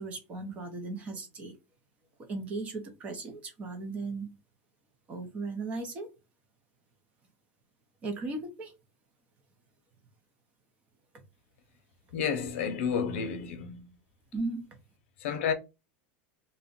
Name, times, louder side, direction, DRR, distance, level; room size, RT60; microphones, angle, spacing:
voice 1, 0.0-1.5 2.3-4.3 5.1-6.1 8.0-8.7 14.3-14.8, right 3 dB, 20° right, 0.6 m, -36 dB
voice 2, 12.1-13.9 15.2-15.5, left 7 dB, 80° left, 0.6 m, -31 dB
2.5 x 2.1 x 3.7 m
supercardioid pair, 175°, 7 cm